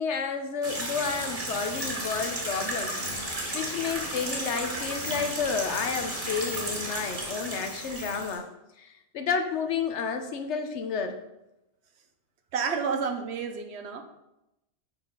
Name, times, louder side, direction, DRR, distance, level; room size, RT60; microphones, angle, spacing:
voice 1, 0.0-8.5 8.8-11.2, left 5 dB, 80° left, 6 dB, 1.1 m, -31 dB
sound 1, 0.6-8.4, right 1 dB, 30° right, 1.7 m, -34 dB
sound 2, 1.0-8.3, left 2 dB, 50° left, 1.4 m, -46 dB
voice 2, 12.5-14.0, right 5 dB, 75° right, 7 dB, 1.0 m, -30 dB
7.2 x 4.1 x 5.5 m, 0.92 s
omnidirectional pair, 1.2 m